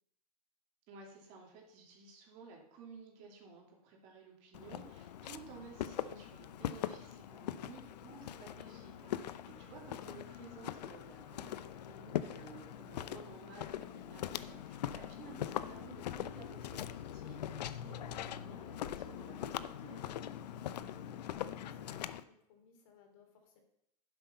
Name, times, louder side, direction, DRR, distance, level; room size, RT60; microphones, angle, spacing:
voice 1, 0.9-20.1, right 5 dB, 35° right, 0 dB, 2.8 m, -55 dB
Walk footsteps, 4.5-22.2, left 11 dB, 75° left, 0.6 m, -42 dB
voice 2, 20.6-23.6, left 6 dB, 55° left, 3 dB, 3.3 m, -63 dB
11.0 x 7.8 x 5.6 m, 0.75 s
supercardioid pair, 150°, 21 cm